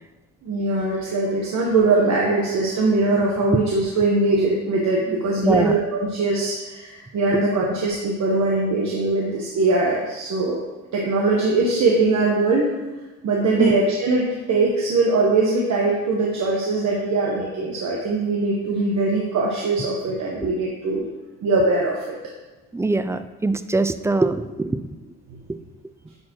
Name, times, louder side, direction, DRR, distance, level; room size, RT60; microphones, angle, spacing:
voice 1, 0.4-10.6 10.9-12.7 13.2-21.1 21.4-22.2 25.3-25.4, right 3 dB, 65° right, -3 dB, 1.2 m, -21 dB
voice 2, 5.4-5.7 13.5-13.8 20.4-20.5 22.7-24.8 25.0-25.1, right 2 dB, 10° right, 11 dB, 0.3 m, -22 dB
10.5 x 4.3 x 3.0 m, 1.2 s
cardioid pair, 90°, 30 cm